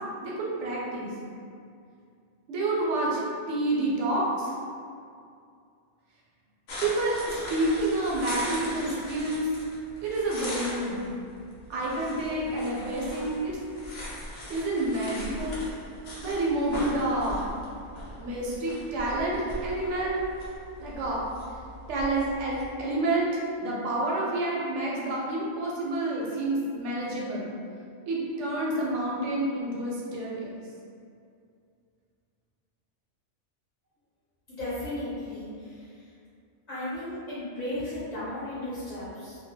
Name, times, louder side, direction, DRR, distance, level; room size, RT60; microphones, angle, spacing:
voice 1, 0.2-1.1 2.5-3.2 3.5-4.5 6.8-9.5 10.0-11.1 11.7-13.6 14.5-15.7 16.2-17.5 18.2-20.3 20.8-21.2 21.9-23.3 23.6-27.5 28.1-30.6, right 2 dB, 80° right, -4 dB, 0.9 m, -28 dB
sound 1, 6.7-22.7, left 1 dB, 80° left, 0.9 m, -40 dB
voice 2, 34.5-35.8 36.7-39.4, left 1 dB, 45° left, -13 dB, 0.8 m, -35 dB
2.2 x 2.0 x 2.7 m, 2.4 s
omnidirectional pair, 1.2 m